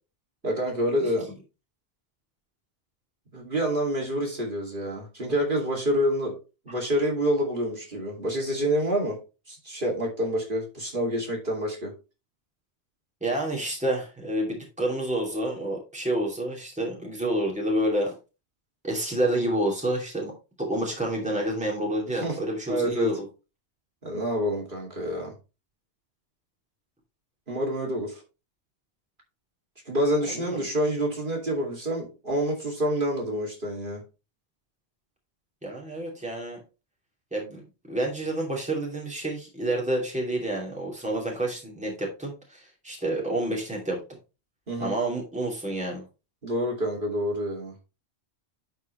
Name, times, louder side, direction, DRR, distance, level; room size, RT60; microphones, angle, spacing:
voice 1, 0.4-1.2 3.3-6.4 6.7-9.2 9.5-11.9 22.2-22.4 22.7-23.1 24.0-25.3 27.5-28.2 29.9-34.0 44.7-45.0 46.4-47.7, equal, 50° right, -1 dB, 2.7 m, -27 dB
voice 2, 13.2-18.1 18.8-20.3 20.6-23.3 30.2-30.7 35.6-36.6 37.3-37.6 37.9-44.0 44.8-46.0, right 1 dB, 5° right, -2 dB, 2.7 m, -29 dB
11.0 x 4.8 x 3.1 m, 0.29 s
omnidirectional pair, 1.1 m